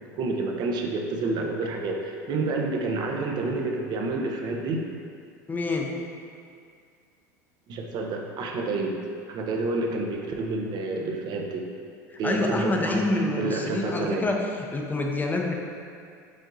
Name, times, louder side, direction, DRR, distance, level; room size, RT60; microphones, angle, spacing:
voice 1, 0.1-4.9 7.7-8.9 9.3-11.6 12.2-13.0 13.3-14.3, right 3 dB, 50° right, 1 dB, 0.6 m, -29 dB
voice 2, 5.5-5.9 12.1-14.4 14.7-15.5, left 2 dB, 20° left, 1 dB, 0.5 m, -26 dB
5.0 x 3.7 x 2.6 m, 2.3 s
hypercardioid pair, 90°, 10 cm